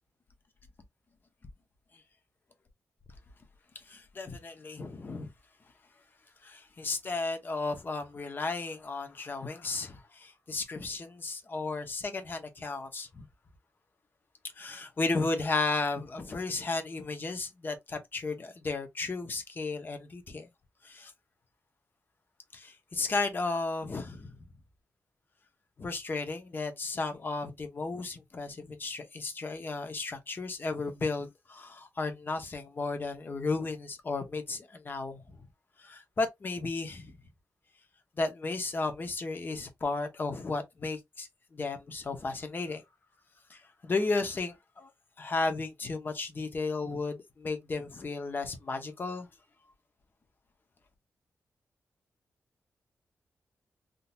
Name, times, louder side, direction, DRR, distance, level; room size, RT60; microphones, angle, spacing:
voice 1, 3.9-5.3 6.4-13.2 14.6-20.5 20.8-21.1 22.5-24.3 25.8-35.2 35.8-37.2 38.2-42.8 43.5-44.9 45.2-49.3, left 3 dB, 40° left, 0.8 m, -34 dB
3.7 x 2.8 x 2.3 m
cardioid pair, 90°, 5 cm